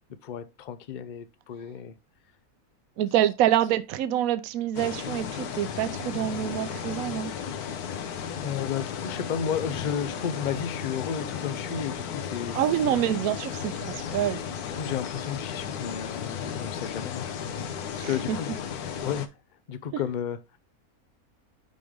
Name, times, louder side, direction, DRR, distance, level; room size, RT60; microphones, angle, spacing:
voice 1, 0.2-2.0 8.4-12.6 12.8-12.9 14.7-17.3 18.0-18.5 19.0-19.3 19.7-20.6, left 8 dB, 60° left, 0.5 m, -33 dB
voice 2, 3.0-7.3 12.5-14.4 17.9-18.4, right 11 dB, 75° right, 1.0 m, -26 dB
sound 1, 4.8-19.3, left 7 dB, 85° left, 1.3 m, -34 dB
9.3 x 3.4 x 3.6 m
omnidirectional pair, 1.6 m